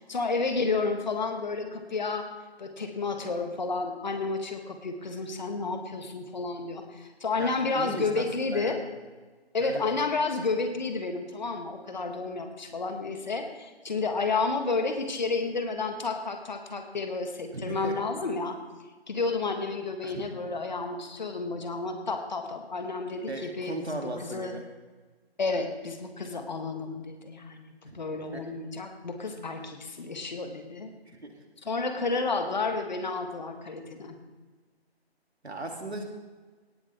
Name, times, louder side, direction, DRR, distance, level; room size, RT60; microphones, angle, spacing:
voice 1, 0.0-2.3 2.6-8.8 9.5-18.6 19.1-24.5 25.4-30.9 31.6-34.2, left 3 dB, 45° left, 6 dB, 1.5 m, -31 dB
voice 2, 7.4-8.8 9.6-9.9 17.5-17.9 20.0-20.2 23.3-24.6 27.9-28.4 31.0-31.4 35.4-36.0, right 2 dB, 80° right, 2 dB, 2.6 m, -38 dB
17.5 x 10.0 x 3.5 m, 1.3 s
figure-of-eight pair, 155°, 32 cm